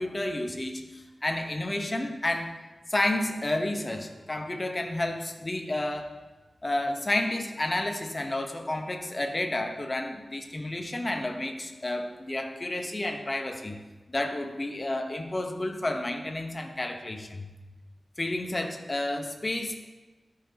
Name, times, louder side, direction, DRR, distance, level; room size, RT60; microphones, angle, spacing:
voice 1, 0.0-2.5 2.9-6.1 6.6-13.8 14.1-17.5 18.2-19.8, left 1 dB, 35° left, 5 dB, 1.0 m, -31 dB
13.5 x 5.8 x 2.9 m, 1.2 s
cardioid pair, 55°, 0 cm